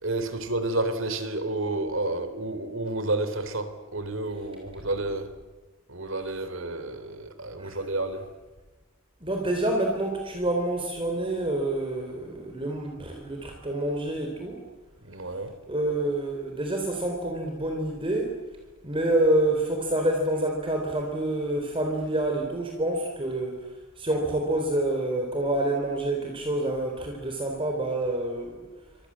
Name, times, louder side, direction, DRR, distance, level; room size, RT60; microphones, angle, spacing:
voice 1, 0.0-5.3 5.9-8.3 15.0-15.5, right 2 dB, 60° right, 10 dB, 3.6 m, -30 dB
voice 2, 9.2-14.6 15.7-18.3 18.8-23.5 24.0-28.6, right 1 dB, 25° right, 2 dB, 3.7 m, -27 dB
29.5 x 25.0 x 7.6 m, 1.2 s
head